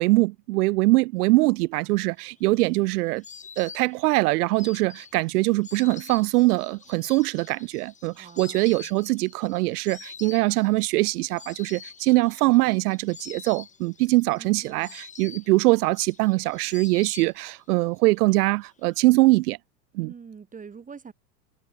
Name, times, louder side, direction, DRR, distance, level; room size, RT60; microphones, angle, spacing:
voice 1, 0.0-3.2 3.6-19.6 19.9-20.1, right 22 dB, 65° right, 0.9 m, -22 dB
Insect, 2.1-17.8 18.1-18.9, left 6 dB, 15° left, 2.4 m, -46 dB
voice 2, 8.1-8.9 14.3-14.9 20.0-21.1, right 6 dB, 15° right, 5.3 m, -45 dB
supercardioid pair, 145°, 50 cm